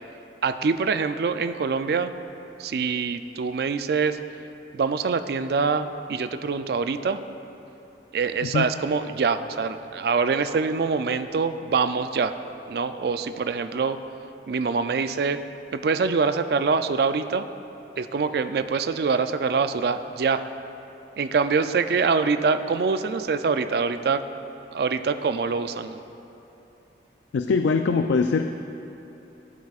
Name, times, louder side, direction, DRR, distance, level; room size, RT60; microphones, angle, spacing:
voice 1, 0.4-2.1 2.6-4.2 4.7-7.2 8.1-12.3 12.7-14.0 14.5-15.4 15.7-17.5 18.0-20.4 21.2-24.2 24.7-26.0, right 5 dB, 55° right, 10 dB, 0.3 m, -24 dB
voice 2, 27.3-28.5, left 4 dB, 80° left, 7 dB, 0.3 m, -22 dB
16.0 x 8.3 x 2.4 m, 3.0 s
head